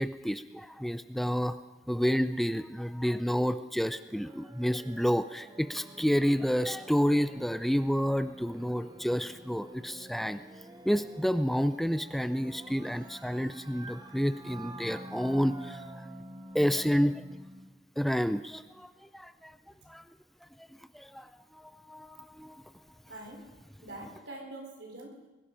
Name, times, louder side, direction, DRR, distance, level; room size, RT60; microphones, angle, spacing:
voice 1, 0.0-1.6 1.9-10.4 10.9-15.8 16.5-17.2 18.0-19.5 19.9-20.0 20.9-21.3 21.9-22.1 22.4-22.5, equal, ahead, 11 dB, 0.4 m, -29 dB
sound 1, 4.1-17.7, right 1 dB, 25° right, 1.0 m, -48 dB
voice 2, 23.1-23.5 23.8-25.3, right 2 dB, 85° right, 1 dB, 4.0 m, -44 dB
21.0 x 12.0 x 5.1 m, 1.2 s
head